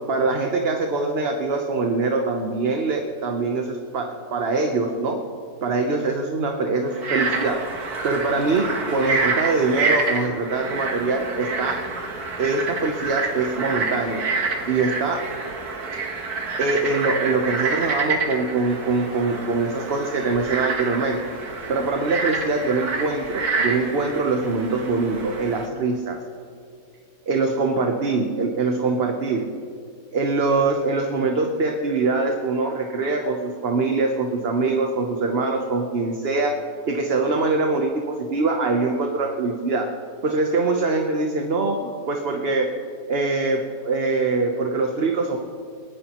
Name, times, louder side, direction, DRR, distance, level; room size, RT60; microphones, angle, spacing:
voice 1, 0.1-5.2 5.6-7.6 8.0-11.8 12.4-14.2 14.7-15.2 16.6-21.2 21.7-26.2 27.3-29.4 30.1-36.5 36.8-39.9 40.2-42.7 43.1-45.4, right 3 dB, 45° right, 3 dB, 1.0 m, -23 dB
Frog, 6.9-25.7, right 3 dB, 90° right, 1.9 m, -28 dB
28.0 x 9.8 x 3.0 m, 2.3 s
omnidirectional pair, 1.6 m